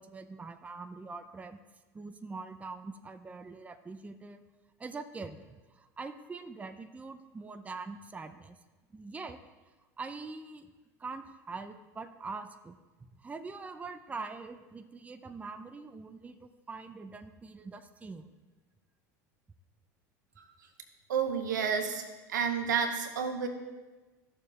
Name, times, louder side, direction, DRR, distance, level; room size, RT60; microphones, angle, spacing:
voice 1, 0.0-1.6 1.9-4.4 4.8-8.6 8.9-9.4 10.0-10.7 11.0-12.8 13.2-18.3 21.6-21.7, right 4 dB, 15° right, 9 dB, 0.5 m, -43 dB
voice 2, 21.1-22.0 22.3-23.5, right 6 dB, 90° right, 4 dB, 1.0 m, -30 dB
13.5 x 6.7 x 2.4 m, 1.2 s
hypercardioid pair, 90°, 10 cm